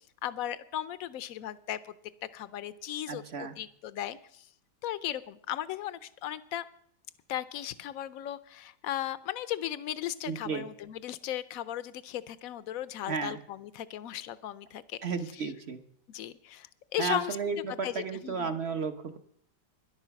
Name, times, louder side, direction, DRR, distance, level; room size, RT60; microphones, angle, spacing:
voice 1, 0.2-1.9 2.3-4.5 4.8-6.7 7.3-15.0 15.4-15.5 16.1-17.4 17.8-18.6, left 12 dB, 65° left, 16 dB, 0.9 m, -36 dB
voice 2, 3.1-3.5 10.3-10.7 13.1-13.4 15.0-15.8 17.0-19.2, right 5 dB, 45° right, 8 dB, 1.0 m, -33 dB
13.0 x 11.0 x 5.8 m, 0.67 s
omnidirectional pair, 1.9 m